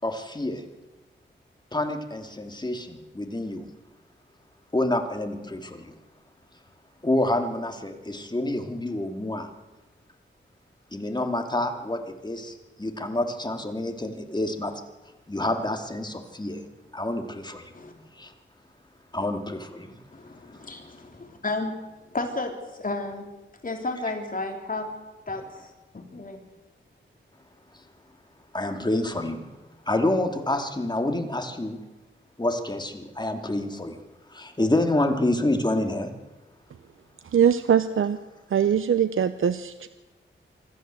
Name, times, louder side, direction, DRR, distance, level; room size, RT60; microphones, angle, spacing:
voice 1, 0.0-0.6 1.7-3.6 4.7-5.6 7.0-9.5 10.9-12.4 12.8-14.7 15.3-16.6 16.9-17.6 19.1-19.7 28.5-29.4 29.9-31.8 32.4-33.9 34.4-36.1, left 1 dB, 20° left, 5 dB, 2.8 m, -27 dB
voice 2, 20.1-21.7 22.1-23.2 23.6-24.9 25.3-25.7 25.9-26.4, left 2 dB, 45° left, 3 dB, 3.5 m, -32 dB
voice 3, 37.3-38.2 38.5-39.9, right 8 dB, 85° right, 12 dB, 0.8 m, -22 dB
25.0 x 13.5 x 7.8 m, 1.1 s
wide cardioid pair, 70°, 20 cm